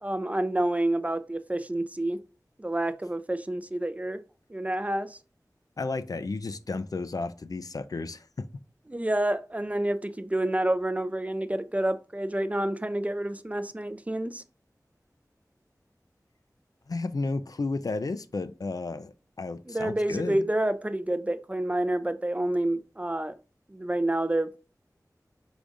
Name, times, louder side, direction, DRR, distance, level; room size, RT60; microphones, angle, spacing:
voice 1, 0.0-2.2 2.6-4.2 4.5-5.2 8.9-14.4 19.7-23.3 23.7-24.6, right 1 dB, 20° right, 0.4 m, -28 dB
voice 2, 5.8-8.5 16.9-20.4, left 3 dB, 65° left, 0.4 m, -33 dB
5.1 x 3.5 x 2.5 m
wide cardioid pair, 40°, 7 cm